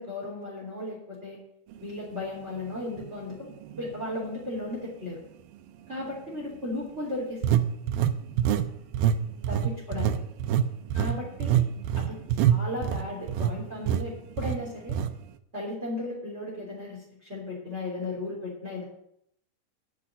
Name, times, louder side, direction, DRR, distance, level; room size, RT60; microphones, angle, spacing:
voice 1, 0.0-1.4 1.8-5.2 5.9-7.6 9.5-10.1 10.9-11.7 11.9-15.0 15.5-18.8, left 2 dB, 20° right, -4 dB, 3.5 m, -35 dB
sound 1, 3.0-3.1 3.7-3.9 7.4-8.7 8.9-9.2 9.4-13.5 13.9-14.0 14.4-14.6 14.9-15.1, right 10 dB, 85° right, 2.5 m, -25 dB
11.5 x 6.3 x 9.1 m, 0.73 s
omnidirectional pair, 4.4 m